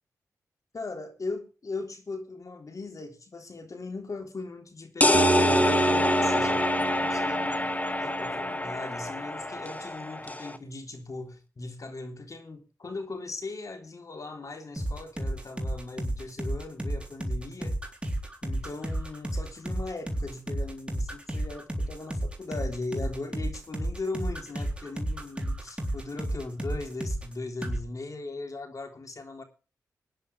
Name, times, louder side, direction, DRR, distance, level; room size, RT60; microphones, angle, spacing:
voice 1, 0.7-7.6 8.0-17.8 18.4-29.4, left 3 dB, 50° left, 3.5 m, -39 dB
sound 1, 5.0-10.6, left 1 dB, 20° left, 1.5 m, -26 dB
Bass guitar, 5.1-9.2, right 3 dB, 70° right, 2.3 m, -30 dB
sound 2, 14.8-27.3 27.6-27.8, right 1 dB, 15° right, 3.7 m, -32 dB
21.0 x 10.0 x 3.4 m
cardioid pair, 45°, 7 cm